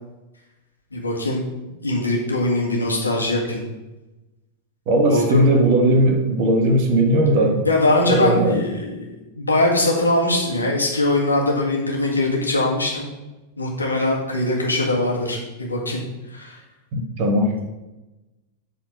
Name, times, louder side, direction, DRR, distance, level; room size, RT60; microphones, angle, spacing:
voice 1, 0.9-1.4 1.8-3.6 5.1-5.4 7.7-13.1 13.6-16.0 16.3-16.6, left 2 dB, 80° left, -1 dB, 1.9 m, -21 dB
voice 2, 4.9-7.6 8.1-8.6 16.9-17.5, right 1 dB, 45° right, 3 dB, 1.5 m, -18 dB
8.1 x 4.3 x 6.5 m, 1.0 s
figure-of-eight pair, 90°, 0 cm